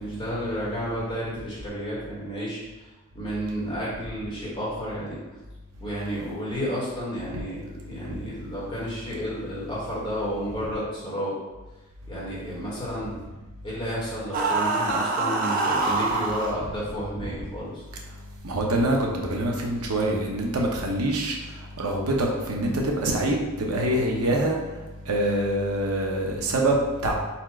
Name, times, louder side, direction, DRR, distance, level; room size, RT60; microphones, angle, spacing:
voice 1, 0.0-2.6 3.1-5.2 5.8-11.3 12.1-13.1 13.6-17.8, equal, 20° left, -8 dB, 1.5 m, -31 dB
sound 1, 14.3-16.5, right 3 dB, 40° right, 0.5 m, -25 dB
voice 2, 18.4-21.3 21.8-24.5 25.1-26.8 27.0-27.1, right 1 dB, 80° right, 0 dB, 0.8 m, -25 dB
4.3 x 2.5 x 4.3 m, 1.2 s
head